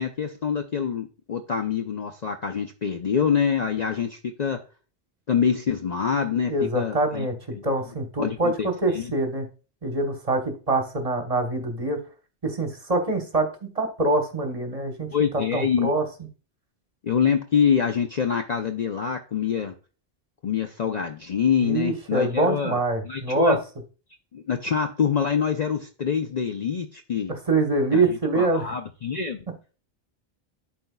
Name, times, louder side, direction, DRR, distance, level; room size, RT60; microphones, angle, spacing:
voice 1, 0.0-4.6 5.3-7.3 7.5-7.7 8.2-8.7 8.9-9.1 15.1-15.9 17.0-19.7 20.4-23.6 24.3-27.3 27.9-29.5, left 7 dB, 50° left, 5 dB, 0.5 m, -25 dB
voice 2, 6.5-9.5 9.8-12.0 12.4-15.1 15.5-16.0 21.6-23.6 27.3-28.8, right 2 dB, 35° right, 4 dB, 1.1 m, -25 dB
12.0 x 4.2 x 2.2 m, 0.35 s
omnidirectional pair, 1.1 m